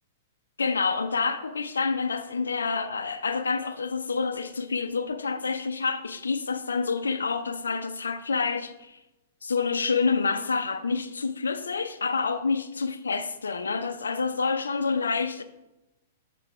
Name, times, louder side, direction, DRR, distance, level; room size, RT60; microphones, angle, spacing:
voice 1, 0.6-9.0 9.4-15.4, left 4 dB, 80° left, 0.5 m, -28 dB
7.5 x 3.3 x 4.7 m
figure-of-eight pair, 110°, 0 cm